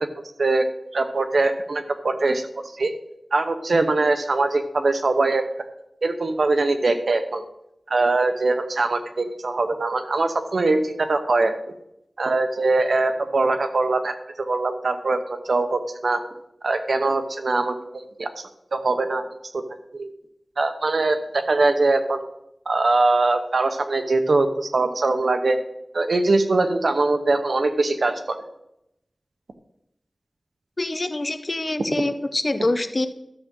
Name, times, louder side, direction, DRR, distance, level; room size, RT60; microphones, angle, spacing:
voice 1, 0.9-2.5 2.8-2.9 3.3-5.4 6.0-7.4 7.9-11.5 12.2-16.2 16.6-17.7 18.2-18.3 18.7-19.2 19.5-19.6 19.9-20.1 20.6-22.2 22.7-25.6 25.9-28.4, right 3 dB, 75° right, 8 dB, 0.9 m, -22 dB
voice 2, 30.8-33.1, left 2 dB, 40° left, 10 dB, 0.7 m, -25 dB
13.0 x 7.3 x 3.8 m, 0.82 s
wide cardioid pair, 70°, 0 cm